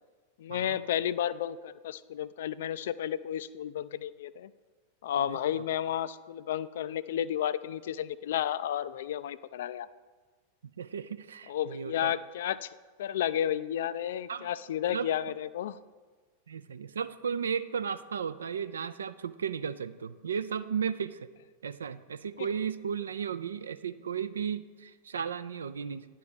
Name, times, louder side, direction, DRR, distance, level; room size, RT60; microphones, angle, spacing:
voice 1, 0.4-4.5 5.0-9.9 11.5-12.7 13.0-15.8 22.4-22.5, left 10 dB, 60° left, 16 dB, 0.3 m, -32 dB
voice 2, 5.2-5.6 10.8-12.1 14.3-14.5 14.9-15.1 16.5-21.3 21.6-26.1, right 7 dB, 70° right, 13 dB, 0.3 m, -35 dB
10.0 x 4.7 x 6.8 m, 1.4 s
figure-of-eight pair, 90°, 0 cm